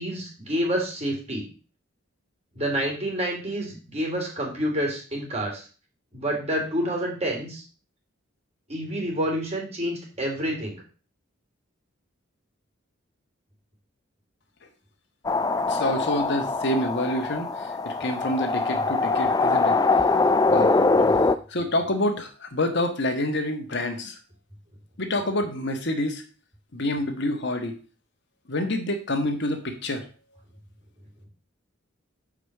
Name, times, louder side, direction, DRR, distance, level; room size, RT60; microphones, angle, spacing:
voice 1, 0.0-1.4 2.5-5.7 6.1-7.6 8.7-10.8 21.0-21.2, equal, 30° right, 0 dB, 3.2 m, -28 dB
sound 1, 15.2-21.4, left 3 dB, 20° left, 0.4 m, -23 dB
voice 2, 15.7-19.8 20.5-20.8 21.5-24.2 25.0-26.2 26.7-27.7 28.5-30.0, left 1 dB, 60° left, 4 dB, 1.5 m, -27 dB
6.7 x 5.0 x 6.6 m, 0.38 s
head